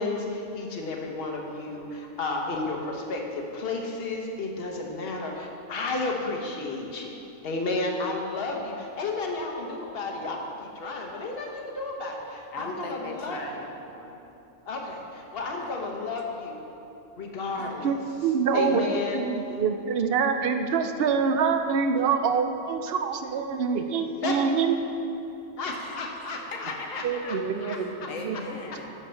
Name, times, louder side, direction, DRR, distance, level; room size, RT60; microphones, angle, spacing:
voice 1, 0.0-7.1 7.4-13.6 14.7-16.7 17.2-17.9 18.5-19.3 24.2-24.4 25.6-27.0 27.6-27.8, left 3 dB, 45° left, 0 dB, 1.2 m, -32 dB
voice 2, 12.5-14.2 15.1-15.7 17.5-17.9 25.7-27.6 28.1-28.9, left 3 dB, 65° left, 1 dB, 1.4 m, -40 dB
voice 3, 17.6-24.7 27.0-28.4, right 5 dB, 65° right, 7 dB, 0.6 m, -26 dB
11.5 x 4.4 x 6.9 m, 3.0 s
omnidirectional pair, 1.5 m